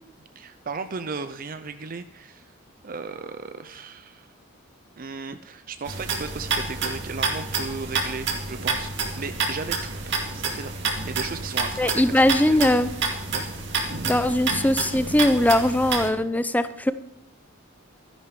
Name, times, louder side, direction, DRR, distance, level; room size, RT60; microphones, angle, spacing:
voice 1, 0.4-2.5 2.8-4.3 5.0-12.6 13.3-13.5, right 4 dB, 45° right, 10 dB, 0.6 m, -36 dB
sound 1, 5.9-16.1, right 4 dB, 60° right, 2.3 m, -29 dB
voice 2, 11.8-12.9 14.0-16.9, left 1 dB, 10° left, 13 dB, 0.6 m, -20 dB
13.5 x 11.0 x 4.9 m, 0.76 s
head